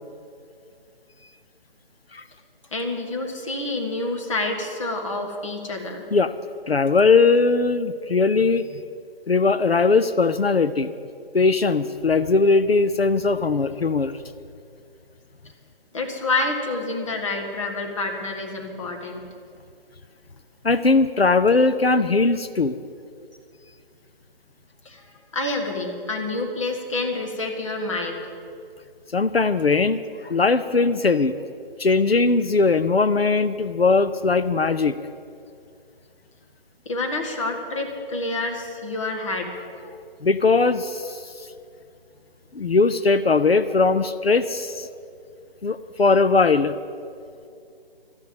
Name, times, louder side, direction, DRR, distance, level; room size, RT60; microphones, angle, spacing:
voice 1, 2.7-6.0 15.9-19.2 24.8-28.2 36.8-39.6, left 2 dB, 30° left, 2 dB, 1.7 m, -28 dB
voice 2, 6.7-8.8 9.3-10.9 11.3-14.1 20.6-22.8 29.1-31.3 31.8-35.0 40.2-41.5 42.5-44.9 45.6-46.7, left 4 dB, 85° left, 13 dB, 0.7 m, -20 dB
12.5 x 10.5 x 7.6 m, 2.4 s
figure-of-eight pair, 150°, 30 cm